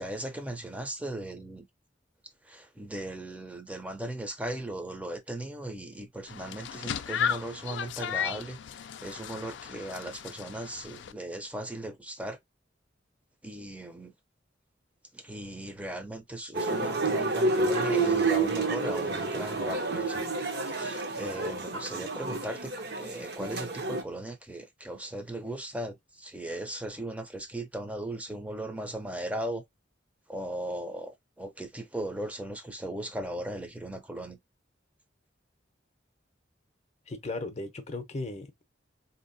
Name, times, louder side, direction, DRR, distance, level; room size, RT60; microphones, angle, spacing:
voice 1, 0.0-1.7 2.4-12.4 13.4-14.1 15.1-20.3 20.6-29.6 30.3-34.4, right 1 dB, 5° right, 0.6 m, -38 dB
sound 1, 6.3-11.1, left 8 dB, 75° left, 0.4 m, -35 dB
sound 2, 16.5-24.0, right 3 dB, 55° right, 0.8 m, -29 dB
voice 2, 37.1-38.6, left 2 dB, 35° left, 0.6 m, -36 dB
4.2 x 2.8 x 2.6 m
head